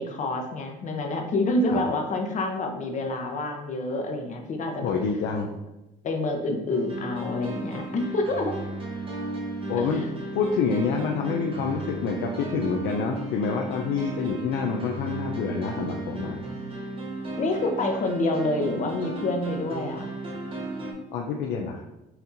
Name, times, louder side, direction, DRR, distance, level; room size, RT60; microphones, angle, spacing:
voice 1, 0.0-4.9 6.0-8.6 9.8-10.1 17.4-20.0, left 2 dB, 45° left, 3 dB, 0.8 m, -27 dB
voice 2, 4.8-5.5 9.7-10.0 10.3-16.4 21.1-21.8, left 5 dB, 80° left, 1 dB, 0.5 m, -27 dB
sound 1, 6.7-20.9, right 2 dB, 30° right, 1.1 m, -35 dB
5.8 x 2.8 x 2.6 m, 0.93 s
cardioid pair, 110°, 17 cm